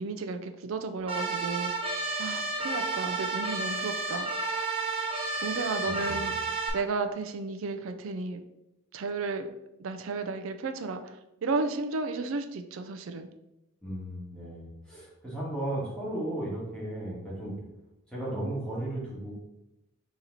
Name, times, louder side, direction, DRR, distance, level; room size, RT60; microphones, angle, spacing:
voice 1, 0.0-1.7 2.2-4.3 5.4-8.5 8.9-9.5 9.8-13.3, right 3 dB, 65° right, 7 dB, 0.4 m, -33 dB
sound 1, 1.1-6.7, right 3 dB, 25° right, 0.7 m, -31 dB
voice 2, 5.8-6.3 13.8-17.6 18.1-19.3, right 1 dB, 5° left, -8 dB, 1.6 m, -35 dB
4.1 x 2.9 x 3.9 m, 0.90 s
head